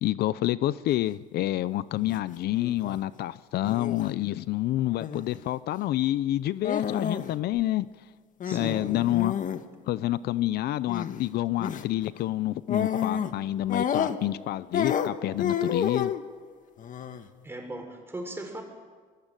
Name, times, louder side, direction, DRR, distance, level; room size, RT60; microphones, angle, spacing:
voice 1, 0.0-7.9 8.5-9.3 9.9-16.1, left 14 dB, 70° left, 17 dB, 0.7 m, -28 dB
sound 1, 1.9-2.2 2.5-3.0 3.6-4.1 5.0-5.4 6.6-7.3 7.6-7.7 8.4-9.6 10.9-11.2 11.6-11.8 12.7-13.4 13.7-14.4 14.7-16.2 16.8-17.3, left 8 dB, 50° left, 1.6 m, -30 dB
voice 2, 8.4-8.8 17.4-18.6, right 2 dB, 15° right, 3 dB, 6.3 m, -37 dB
24.5 x 20.0 x 9.1 m, 1.5 s
cardioid pair, 110°, 17 cm